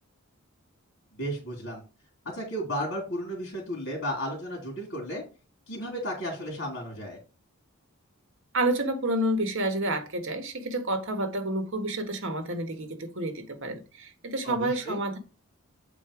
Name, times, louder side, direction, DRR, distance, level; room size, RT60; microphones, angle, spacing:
voice 1, 1.2-1.8 2.3-5.2 5.7-7.2 14.4-15.0, equal, 60° left, 2.4 m, -34 dB
voice 2, 8.5-15.2, right 1 dB, 65° right, 1.4 m, -29 dB
7.7 x 3.9 x 4.9 m
head